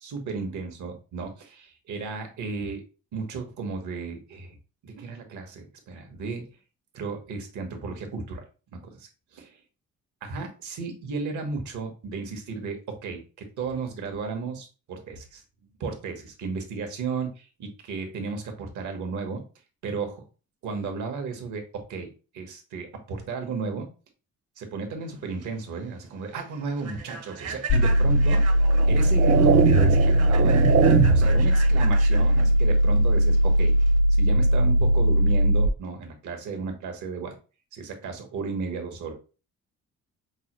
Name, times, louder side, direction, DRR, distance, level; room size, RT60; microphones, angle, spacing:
voice 1, 0.0-2.8 3.1-4.6 4.8-6.5 6.9-8.4 8.9-9.1 9.3-9.5 10.2-15.4 15.8-19.4 19.8-20.2 20.6-23.9 24.6-28.4 28.9-30.6 31.1-33.7 34.1-37.4 37.7-39.1, right 4 dB, 75° right, 4 dB, 1.2 m, -34 dB
Human voice / Train, 25.1-34.0, right 5 dB, 55° right, 0.8 m, -40 dB
sound 1, 27.7-35.7, equal, 50° left, 0.4 m, -20 dB
sound 2, 27.8-27.9 28.7-31.4, right 7 dB, 35° right, 0.4 m, -22 dB
5.3 x 2.2 x 3.0 m, 0.35 s
cardioid pair, 90°, 30 cm